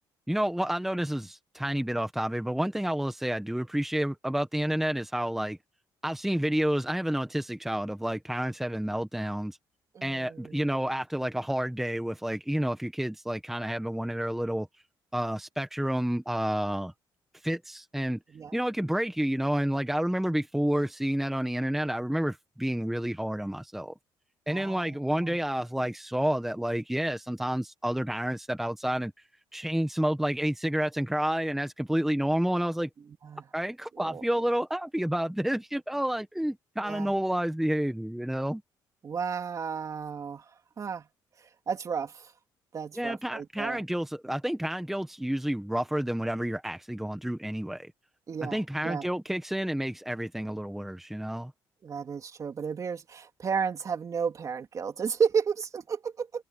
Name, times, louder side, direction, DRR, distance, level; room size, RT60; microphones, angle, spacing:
voice 1, 0.3-5.6 6.0-9.6 10.0-14.7 15.1-16.9 17.4-18.2 18.5-23.9 24.5-29.1 29.5-32.9 33.5-38.6 42.9-47.9 48.4-51.5, right 1 dB, 5° right, 1.4 m, -29 dB
voice 2, 9.9-10.8 18.3-18.5 24.5-25.4 33.2-33.4 34.0-34.2 36.8-37.1 39.0-40.4 40.8-41.0 41.7-42.3 42.7-43.8 48.3-49.1 51.8-56.4, right 6 dB, 40° right, 3.3 m, -33 dB
cardioid pair, 105°, 8 cm